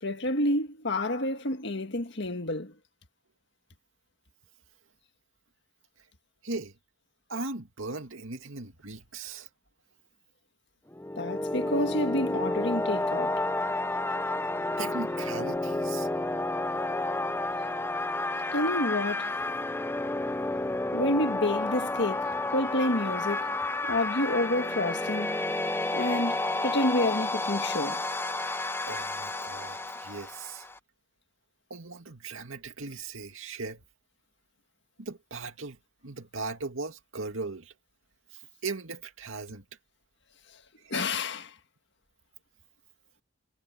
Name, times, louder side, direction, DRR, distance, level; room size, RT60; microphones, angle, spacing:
voice 1, 0.0-2.7 11.2-13.4 18.5-19.4 20.9-23.6 23.9-25.4 25.9-28.0 40.9-41.5, left 1 dB, 55° left, 1.7 m, -29 dB
voice 2, 7.3-9.5 14.8-16.1 28.9-30.7 31.7-33.8 35.0-35.8 36.0-37.7 38.3-39.6 40.8-40.9, right 3 dB, 70° right, 2.3 m, -38 dB
sound 1, 10.9-30.8, left 2 dB, 10° left, 0.6 m, -31 dB
head